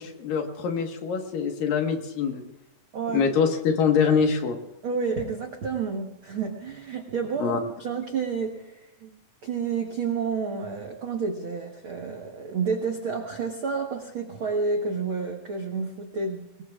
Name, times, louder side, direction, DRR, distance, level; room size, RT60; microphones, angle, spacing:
voice 1, 0.0-2.4 3.1-4.6 7.4-7.6, left 6 dB, 65° left, 3 dB, 3.1 m, -24 dB
voice 2, 2.9-3.3 4.8-9.1 9.4-16.6, right 5 dB, 85° right, 2 dB, 1.1 m, -30 dB
24.5 x 20.0 x 2.4 m, 0.90 s
omnidirectional pair, 4.4 m